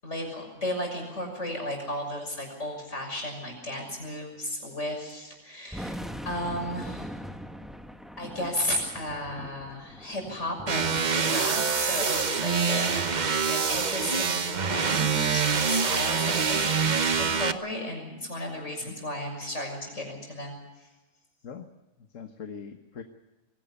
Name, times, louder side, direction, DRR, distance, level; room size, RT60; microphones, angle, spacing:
voice 1, 0.0-6.0 6.2-7.1 8.2-13.0 13.5-16.9 17.2-20.9, left 1 dB, 70° left, 2 dB, 6.8 m, -34 dB
sound 1, 5.1-5.2 5.7-11.2, equal, ahead, 1.0 m, -41 dB
sound 2, 10.7-17.5, right 5 dB, 40° right, 1.0 m, -25 dB
voice 2, 22.0-23.0, left 6 dB, 85° left, 6 dB, 1.6 m, -42 dB
23.0 x 17.0 x 8.2 m, 1.1 s
omnidirectional pair, 1.3 m